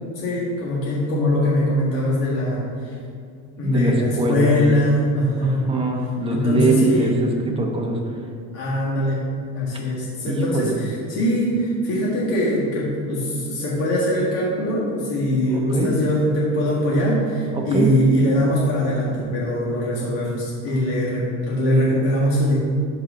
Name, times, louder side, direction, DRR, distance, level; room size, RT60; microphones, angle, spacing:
voice 1, 0.2-3.0 3.6-5.7 6.3-7.1 8.5-9.2 9.5-22.5, equal, 75° left, -6 dB, 1.9 m, -22 dB
voice 2, 3.6-4.5 5.4-8.0 10.3-10.7 15.5-15.9 17.5-17.9, right 2 dB, 15° right, 0 dB, 1.0 m, -22 dB
12.5 x 4.7 x 3.8 m, 2.3 s
cardioid pair, 150°, 36 cm